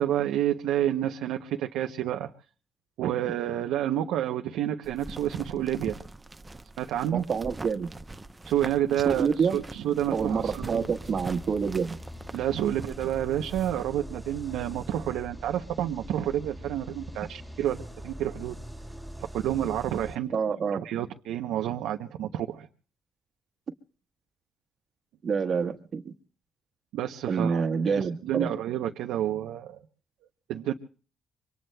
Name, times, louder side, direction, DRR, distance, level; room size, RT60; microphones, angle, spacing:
voice 1, 0.0-2.3 3.0-6.0 6.8-7.2 8.4-10.9 12.3-17.8 18.0-18.5 19.3-20.3 20.7-22.7 26.9-29.8 30.5-30.7, right 11 dB, 90° right, 0.7 m, -29 dB
sound 1, 4.8-13.8, right 2 dB, 15° right, 0.7 m, -43 dB
voice 2, 7.1-7.9 9.0-9.6 10.1-12.0 20.3-20.8 25.2-26.1 27.3-28.5, right 6 dB, 50° right, 1.3 m, -27 dB
sound 2, 10.2-20.2, right 1 dB, ahead, 3.0 m, -42 dB
26.5 x 24.0 x 2.2 m
cardioid pair, 90°, 0 cm